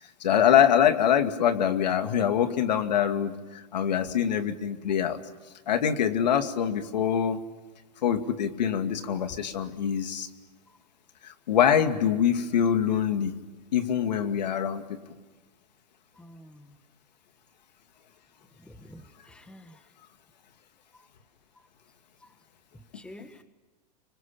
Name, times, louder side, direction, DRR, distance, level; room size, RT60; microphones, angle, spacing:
voice 1, 0.2-5.2 5.7-7.4 8.0-10.3 11.2-13.3 13.7-15.0, left 9 dB, 85° left, 7 dB, 2.4 m, -24 dB
voice 2, 16.2-16.8 18.6-19.8 22.9-23.4, left 1 dB, 5° left, 8 dB, 1.6 m, -49 dB
27.0 x 24.0 x 8.7 m, 1.2 s
supercardioid pair, 140°, 21 cm